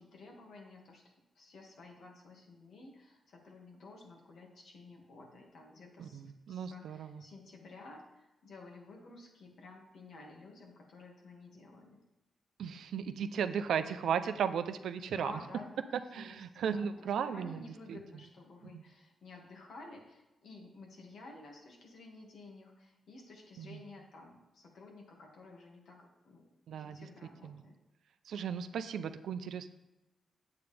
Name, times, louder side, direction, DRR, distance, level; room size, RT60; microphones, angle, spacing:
voice 1, 0.0-12.0 15.1-15.7 16.0-16.4 16.7-27.7, left 3 dB, 70° left, 0 dB, 2.0 m, -53 dB
voice 2, 6.0-7.2 12.6-15.4 16.1-18.0 18.7-18.8 23.6-23.8 26.7-27.1 27.4-27.6 28.3-29.7, right 7 dB, 85° right, 10 dB, 0.5 m, -36 dB
8.8 x 8.1 x 3.4 m, 0.97 s
cardioid pair, 95°, 0 cm